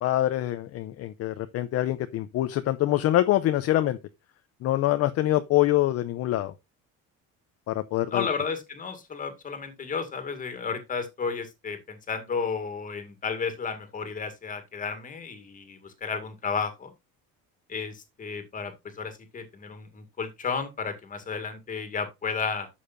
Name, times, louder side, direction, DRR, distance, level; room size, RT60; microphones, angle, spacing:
voice 1, 0.0-4.0 4.6-6.5 7.7-8.3, left 14 dB, 50° left, 0.7 m, -25 dB
voice 2, 8.1-16.9 17.7-17.9 18.2-22.7, left 5 dB, 25° left, 2.1 m, -33 dB
11.5 x 7.2 x 2.6 m
cardioid pair, 170°, 32 cm